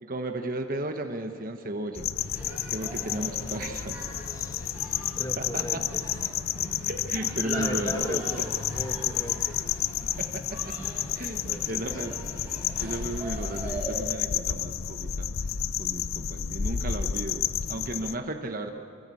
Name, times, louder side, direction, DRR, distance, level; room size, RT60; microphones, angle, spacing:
voice 1, 0.0-2.1 2.7-4.0 5.4-5.6 6.9-8.2 10.2-10.7 11.1-12.1 12.8-15.3 15.8-18.7, right 1 dB, 40° right, 5 dB, 1.1 m, -34 dB
sound 1, 1.9-18.2, left 9 dB, 80° left, 0.6 m, -31 dB
sound 2, 2.2-14.0, right 1 dB, 10° right, 4.5 m, -42 dB
voice 2, 4.3-4.7 5.1-6.4 7.4-9.6 11.4-12.1, equal, 15° left, 6 dB, 1.3 m, -37 dB
sound 3, 7.6-14.4, left 2 dB, 60° left, 3.2 m, -52 dB
24.5 x 20.0 x 8.4 m, 2.4 s
head